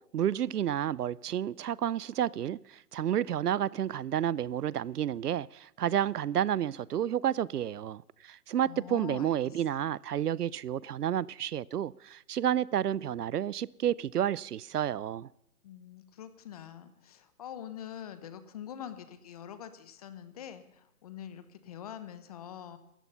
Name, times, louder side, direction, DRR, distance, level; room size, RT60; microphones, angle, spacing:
voice 1, 0.1-15.3, right 10 dB, 80° right, 0.7 m, -30 dB
voice 2, 8.6-9.4 9.7-9.8 15.6-22.8, left 9 dB, 25° left, 1.0 m, -44 dB
18.0 x 13.5 x 5.6 m
hypercardioid pair, 160°, 46 cm